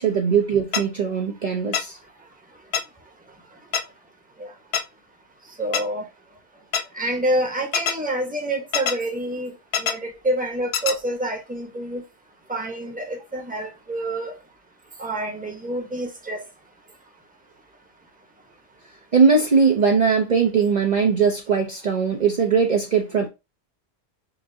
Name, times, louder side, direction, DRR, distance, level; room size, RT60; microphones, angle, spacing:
voice 1, 0.0-2.0 19.1-23.3, right 5 dB, 45° right, 0.7 m, -20 dB
sound 1, 0.7-0.8 1.7-1.8 2.7-2.8 3.7-3.8 4.7-4.8 5.7-5.8 6.7-6.8 7.7-7.9 8.7-8.9 9.7-9.9 10.7-10.9, left 7 dB, 70° left, 0.8 m, -23 dB
voice 2, 5.6-6.0 6.9-9.5 9.8-12.0 12.5-14.3 15.0-16.4, right 1 dB, 10° right, 0.9 m, -27 dB
6.0 x 2.6 x 2.7 m
omnidirectional pair, 1.1 m